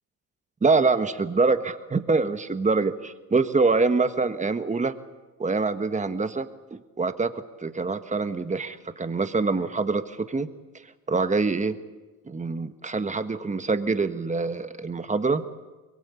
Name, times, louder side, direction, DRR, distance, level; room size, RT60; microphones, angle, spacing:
voice 1, 0.6-4.9 5.4-10.5 11.1-11.8 12.3-15.4, right 4 dB, 20° right, 10 dB, 1.4 m, -25 dB
23.0 x 23.0 x 8.4 m, 1.2 s
cardioid pair, 115°, 36 cm